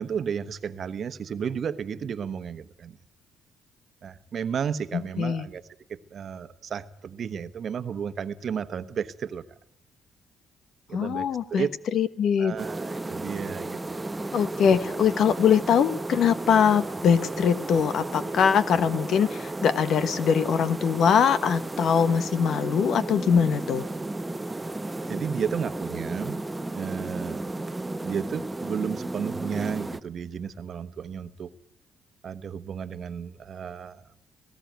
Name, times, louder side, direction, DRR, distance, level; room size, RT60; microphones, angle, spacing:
voice 1, 0.0-3.0 4.0-9.4 10.9-11.7 12.4-14.0 25.1-26.4 26.7-27.5 28.0-31.5 32.2-34.0, right 7 dB, 55° right, 11 dB, 1.2 m, -33 dB
voice 2, 4.9-5.5 10.9-11.7 11.9-12.5 14.3-23.8, left 7 dB, 65° left, 13 dB, 1.2 m, -22 dB
sound 1, 12.6-30.0, right 2 dB, 15° right, 0.9 m, -34 dB
18.5 x 16.5 x 9.3 m, 0.75 s
cardioid pair, 90°, 0 cm